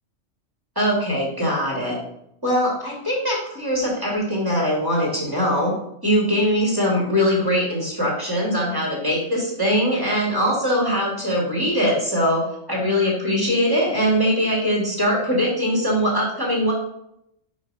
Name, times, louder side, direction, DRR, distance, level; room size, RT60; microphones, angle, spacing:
voice 1, 0.7-2.0 2.4-5.7 6.0-12.4 12.7-16.7, equal, 15° right, -3 dB, 1.7 m, -21 dB
4.8 x 4.2 x 5.2 m, 0.78 s
omnidirectional pair, 1.4 m